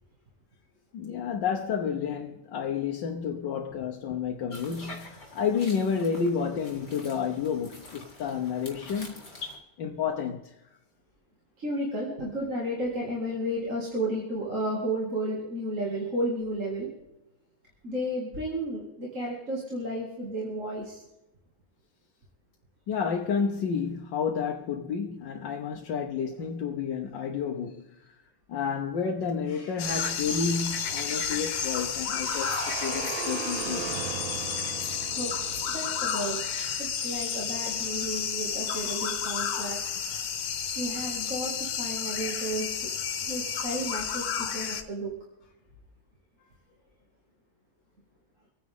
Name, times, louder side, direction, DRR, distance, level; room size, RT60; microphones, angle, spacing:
voice 1, 0.9-9.2 9.8-10.5 22.9-28.0 28.5-34.1 38.1-38.2 38.6-39.1, left 6 dB, 65° left, 1.5 m, -31 dB
sound 1, 4.5-9.6, left 2 dB, 30° left, 3.2 m, -45 dB
voice 2, 11.6-16.9 17.8-21.0 35.1-36.5 36.8-39.8 40.8-42.9 43.2-45.1, right 1 dB, 35° right, 2.6 m, -33 dB
sound 2, 29.8-44.8, left 7 dB, 80° left, 2.0 m, -31 dB
sound 3, 32.2-36.9, right 9 dB, 75° right, 1.6 m, -37 dB
25.5 x 9.8 x 3.7 m
omnidirectional pair, 2.3 m